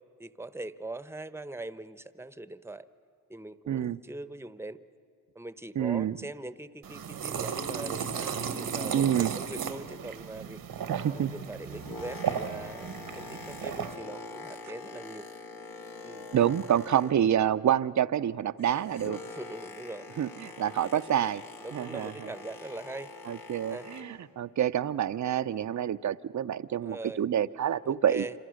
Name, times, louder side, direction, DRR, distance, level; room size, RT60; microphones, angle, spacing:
voice 1, 0.2-2.9 3.3-4.8 5.3-10.6 11.1-12.9 13.1-15.3 16.0-16.3 19.2-20.1 20.8-21.3 21.6-23.1 23.7-23.9 26.8-27.3 27.8-28.3, right 2 dB, 5° right, 13 dB, 0.8 m, -41 dB
voice 2, 3.7-4.0 5.8-6.2 8.9-9.3 10.9-11.3 16.3-19.2 20.2-21.4 21.7-22.3 23.3-28.3, right 10 dB, 55° right, 14 dB, 0.6 m, -27 dB
sound 1, 6.8-14.0, right 7 dB, 80° right, 1.3 m, -35 dB
Boat Water vehicle, 11.4-17.5 17.8-24.3 24.9-25.0, left 3 dB, 75° left, 1.9 m, -45 dB
27.5 x 26.5 x 6.4 m, 2.4 s
cardioid pair, 60°, 35 cm